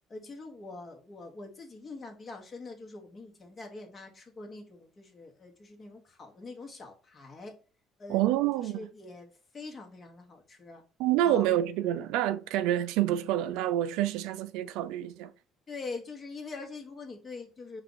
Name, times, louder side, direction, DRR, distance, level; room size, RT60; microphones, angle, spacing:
voice 1, 0.1-7.6 8.0-8.2 8.6-10.8 11.2-11.5 15.7-17.8, left 3 dB, 30° left, 1.3 m, -44 dB
voice 2, 8.1-8.8 11.0-15.3, right 12 dB, 85° right, 0.3 m, -27 dB
4.5 x 2.5 x 3.9 m
cardioid pair, 105°, 0 cm